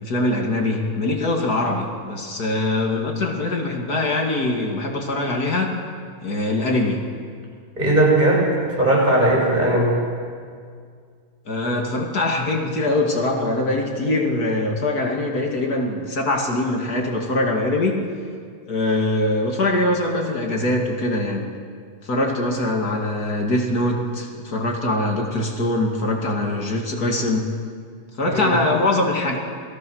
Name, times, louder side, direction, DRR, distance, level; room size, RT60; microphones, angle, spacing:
voice 1, 0.0-5.7 6.2-7.0 11.5-18.0 18.7-21.4 22.0-27.4 28.2-29.4, left 2 dB, 75° left, 1 dB, 2.9 m, -23 dB
voice 2, 7.8-8.4 8.8-10.0 28.3-28.6, right 1 dB, 25° right, -3 dB, 7.9 m, -18 dB
28.0 x 20.0 x 6.4 m, 2.1 s
omnidirectional pair, 1.7 m